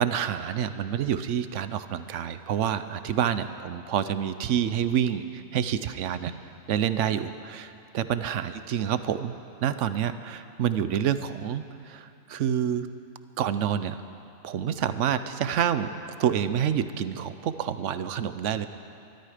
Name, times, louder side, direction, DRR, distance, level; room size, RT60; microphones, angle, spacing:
voice 1, 0.0-6.3 6.7-12.9 13.4-14.0 14.4-15.9 16.2-18.7, right 9 dB, 65° right, 12 dB, 0.9 m, -28 dB
21.5 x 13.5 x 5.0 m, 2.6 s
omnidirectional pair, 1.4 m